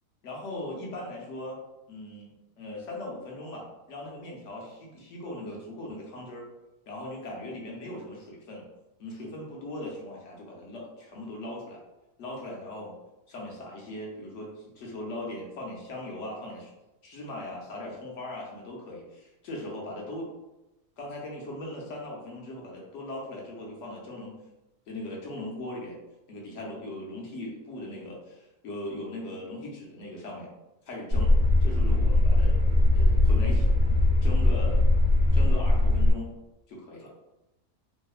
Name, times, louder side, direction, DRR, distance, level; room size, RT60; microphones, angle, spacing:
voice 1, 0.2-1.6 1.9-2.3 2.6-6.5 6.9-8.6 9.0-11.8 12.2-12.9 13.3-16.7 17.0-20.3 21.0-24.3 24.9-26.0 26.3-30.5 30.9-31.3 31.6-32.6 32.9-33.7 34.2-34.8 35.3-36.4 36.7-37.1, left 1 dB, 65° left, -2 dB, 0.8 m, -39 dB
sound 1, 31.1-36.1, left 2 dB, 65° right, 1.0 m, -21 dB
2.8 x 2.0 x 2.3 m, 0.99 s
omnidirectional pair, 1.7 m